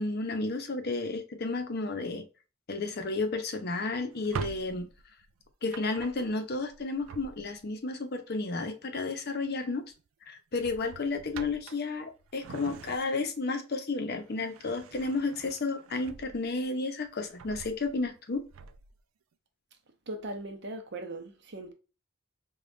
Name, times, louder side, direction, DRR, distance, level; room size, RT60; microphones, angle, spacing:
voice 1, 0.0-2.2 2.7-4.9 5.6-9.8 10.3-18.4, left 3 dB, 50° left, 0.7 m, -32 dB
Drawer open or close, 4.1-7.8 9.2-9.6 9.9-10.1 10.5-13.4 13.9-16.6 17.0-19.0, right 6 dB, 80° right, 0.4 m, -44 dB
voice 2, 20.1-21.7, right 2 dB, 55° right, 0.7 m, -39 dB
5.0 x 2.3 x 2.5 m
head